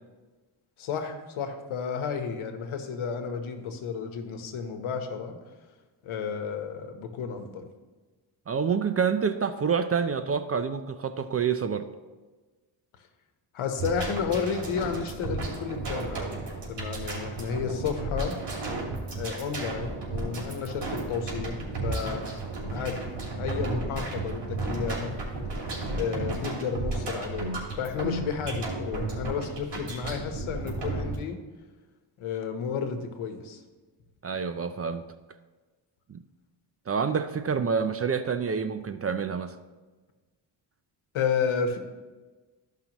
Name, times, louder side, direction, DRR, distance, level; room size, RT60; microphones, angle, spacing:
voice 1, 0.8-5.4 6.0-7.7 13.5-16.3 16.7-18.4 19.1-22.2 22.7-23.1 23.4-25.1 25.9-31.4 32.2-33.6 41.1-41.8, left 6 dB, 85° left, 5 dB, 1.1 m, -32 dB
voice 2, 8.5-11.8 34.2-35.0 36.1-36.2 36.9-39.6, right 6 dB, 30° right, 10 dB, 0.4 m, -27 dB
sound 1, 13.8-31.2, right 2 dB, 60° right, 2.6 m, -33 dB
13.5 x 5.7 x 3.0 m, 1.3 s
cardioid pair, 115°, 47 cm